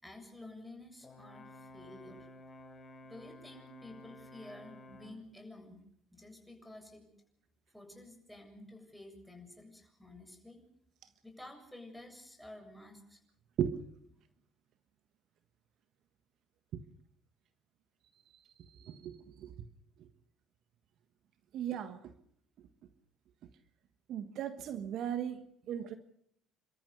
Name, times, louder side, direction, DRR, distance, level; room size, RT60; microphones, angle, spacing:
voice 1, 0.0-2.3 3.0-5.8 6.1-7.1 7.7-10.6 11.2-13.2, left 1 dB, ahead, 7.3 m, -51 dB
Brass instrument, 1.0-5.3, left 1 dB, 30° left, 4.2 m, -53 dB
voice 2, 18.8-19.5 21.5-22.0 24.1-25.9, right 9 dB, 60° right, 1.4 m, -37 dB
29.0 x 13.5 x 6.7 m
hypercardioid pair, 60°, 0 cm